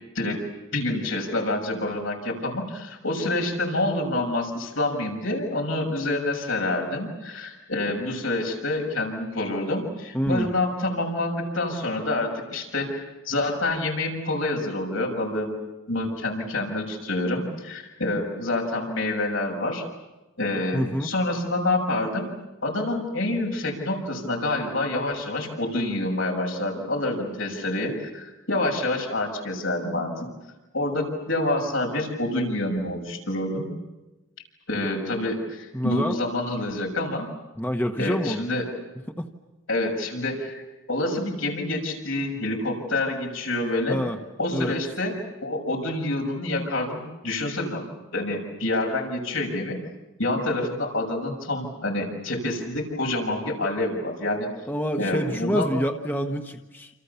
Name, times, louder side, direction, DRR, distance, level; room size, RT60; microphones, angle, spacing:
voice 1, 0.7-15.5 15.9-19.8 20.4-22.3 22.6-30.1 30.7-33.7 34.7-37.3 38.0-38.6 39.7-40.6 40.9-44.0 44.4-47.8 48.1-49.8 50.2-54.5 55.0-55.7, left 2 dB, 85° left, 1 dB, 6.9 m, -27 dB
voice 2, 10.1-10.5 20.7-21.1 35.7-36.2 37.6-38.4 39.2-39.3 43.9-44.2 44.5-44.8 54.7-56.9, equal, 10° left, 4 dB, 1.2 m, -27 dB
28.5 x 28.0 x 7.1 m, 1.1 s
head